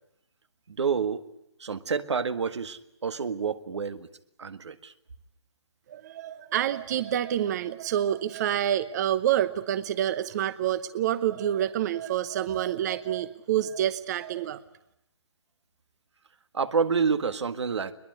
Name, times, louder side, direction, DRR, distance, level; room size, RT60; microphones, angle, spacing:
voice 1, 0.7-1.3 1.6-4.1 4.4-4.9 16.5-17.9, right 5 dB, 75° right, 11 dB, 1.8 m, -28 dB
voice 2, 5.9-14.6, right 11 dB, 40° right, 14 dB, 1.0 m, -27 dB
22.0 x 21.0 x 9.5 m, 0.82 s
hypercardioid pair, 150°, 15 cm